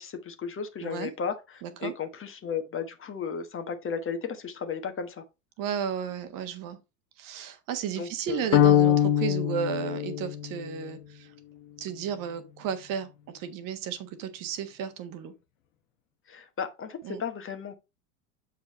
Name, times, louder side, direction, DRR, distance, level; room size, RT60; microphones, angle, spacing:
voice 1, 0.0-5.2 8.0-8.5 16.3-17.8, left 6 dB, 30° left, 1.4 m, -34 dB
voice 2, 0.8-1.1 1.6-1.9 5.6-6.8 7.2-11.3 11.8-13.1 13.3-15.3 17.0-17.2, right 8 dB, 45° right, 1.3 m, -33 dB
sound 1, 8.5-10.8, left 11 dB, 65° left, 1.3 m, -23 dB
7.4 x 5.0 x 4.3 m
hypercardioid pair, 80°, 44 cm